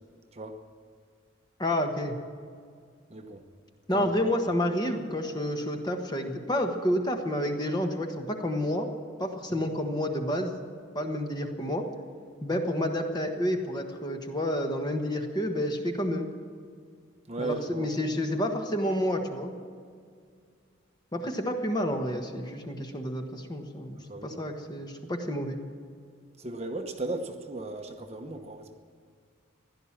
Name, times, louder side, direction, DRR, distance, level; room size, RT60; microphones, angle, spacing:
voice 1, 1.6-2.1 3.9-8.9 9.2-10.5 10.9-11.8 12.4-16.3 17.4-19.5 21.1-25.6, equal, 20° left, 4 dB, 1.3 m, -29 dB
voice 2, 3.1-3.4 3.9-4.1 17.3-17.9 23.9-24.3 26.4-28.8, right 2 dB, 30° right, 5 dB, 1.0 m, -36 dB
16.0 x 11.5 x 7.4 m, 2.1 s
head